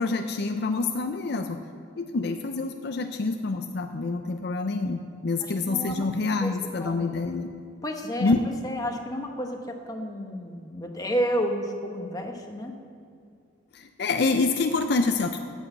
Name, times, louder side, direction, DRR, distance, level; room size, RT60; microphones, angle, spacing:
voice 1, 0.0-1.6 2.0-7.5 8.2-8.4 13.7-15.5, left 3 dB, 55° left, 6 dB, 0.5 m, -27 dB
voice 2, 5.4-6.1 6.4-6.5 6.8-7.0 7.8-12.7, equal, 20° left, 3 dB, 1.0 m, -31 dB
9.4 x 8.1 x 8.2 m, 2.4 s
head